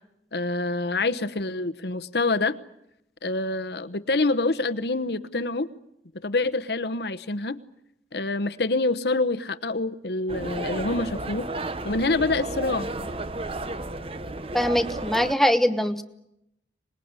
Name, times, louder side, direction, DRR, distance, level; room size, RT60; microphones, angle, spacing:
voice 1, 0.3-2.6 3.2-5.7 6.2-7.6 8.1-11.5 11.8-12.9, left 3 dB, 65° left, 11 dB, 1.0 m, -26 dB
sound 1, 10.3-15.3, right 2 dB, 30° right, 1.0 m, -33 dB
voice 2, 14.5-16.0, equal, ahead, 9 dB, 1.1 m, -22 dB
25.5 x 20.5 x 9.6 m, 0.84 s
head